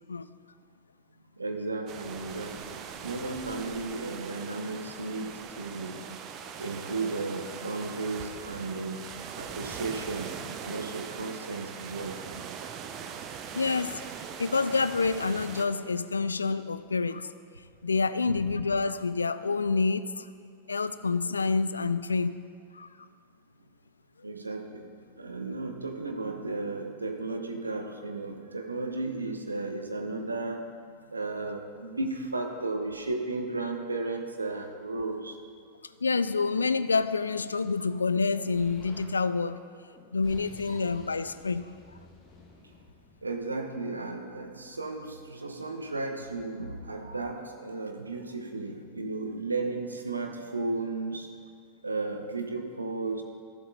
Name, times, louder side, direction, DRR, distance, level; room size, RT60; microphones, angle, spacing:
voice 1, 1.4-6.0 6.6-9.0 9.4-12.2 18.3-18.4 24.2-24.9 25.2-30.6 31.1-35.4 40.2-40.3 40.7-40.8 43.2-51.3 51.8-53.2, right 3 dB, 80° right, 4 dB, 0.9 m, -34 dB
sound 1, 1.9-15.7, right 7 dB, 35° right, 0.6 m, -41 dB
voice 2, 13.5-14.0 14.4-17.3 17.8-20.3 20.7-22.4 22.7-22.9 36.0-39.6 40.1-41.7, left 4 dB, 75° left, 14 dB, 0.3 m, -28 dB
Explosion, 38.5-39.1 39.9-43.8, left 2 dB, 20° left, 2.2 m, -53 dB
12.5 x 7.6 x 3.9 m, 2.2 s
figure-of-eight pair, 90°, 0 cm